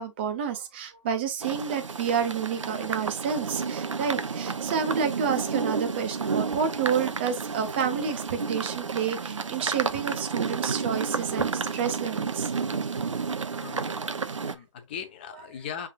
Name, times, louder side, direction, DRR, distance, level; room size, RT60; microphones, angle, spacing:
voice 1, 0.0-12.5 13.7-14.1, right 7 dB, 20° right, 0.6 m, -29 dB
sound 1, 1.4-14.5, right 5 dB, 80° right, 0.6 m, -31 dB
voice 2, 12.9-13.3 13.6-14.0 14.4-15.9, left 8 dB, 20° left, 0.6 m, -39 dB
6.3 x 3.5 x 2.2 m
hypercardioid pair, 155°, 16 cm